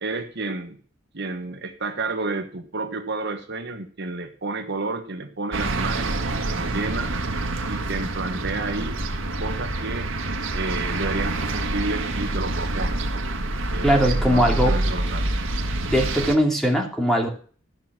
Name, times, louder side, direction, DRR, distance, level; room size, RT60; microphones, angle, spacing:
voice 1, 0.0-0.8 1.1-7.1 7.7-9.0 9.4-10.1 10.5-15.3, right 3 dB, 60° right, 5 dB, 1.4 m, -31 dB
sound 1, 5.5-16.3, right 2 dB, 85° right, 1.6 m, -26 dB
voice 2, 13.8-14.8 15.9-17.3, equal, ahead, 1 dB, 2.8 m, -20 dB
14.5 x 6.3 x 6.1 m, 0.43 s
head